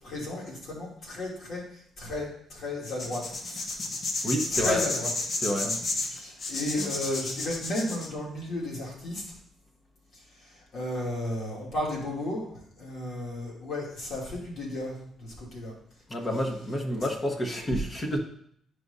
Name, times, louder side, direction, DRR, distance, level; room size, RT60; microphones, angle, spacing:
voice 1, 0.0-3.8 4.1-5.1 5.6-5.8 6.1-9.2 10.3-12.5 12.8-15.8 16.2-16.7 16.9-17.1 17.8-17.9, left 1 dB, 65° left, -4 dB, 2.8 m, -34 dB
sound 1, 2.9-8.1, left 3 dB, 50° left, 0.9 m, -31 dB
voice 2, 4.2-4.8 5.4-5.8 6.8-6.9 16.1-18.2, equal, 30° left, 3 dB, 1.3 m, -29 dB
10.5 x 4.9 x 2.7 m, 0.67 s
cardioid pair, 90°, 0 cm